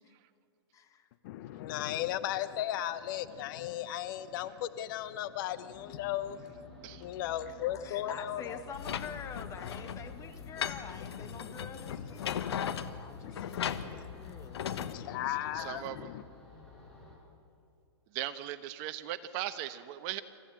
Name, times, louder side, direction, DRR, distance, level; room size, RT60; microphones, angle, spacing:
voice 1, 0.7-1.1 6.4-6.5 7.8-12.4 13.0-14.7, left 6 dB, 20° left, 8 dB, 1.5 m, -46 dB
voice 2, 1.2-8.6 11.2-11.3 11.7-12.8 13.2-14.1 14.6-16.2, left 12 dB, 50° left, 13 dB, 0.9 m, -37 dB
sound 1, 5.7-17.2, left 2 dB, 5° left, 5.9 m, -53 dB
sound 2, 8.7-14.9, left 8 dB, 70° left, 1.3 m, -38 dB
voice 3, 15.6-16.1 18.1-20.2, right 13 dB, 40° right, 12 dB, 1.1 m, -38 dB
28.0 x 15.0 x 7.7 m, 2.5 s
hypercardioid pair, 130°, 14 cm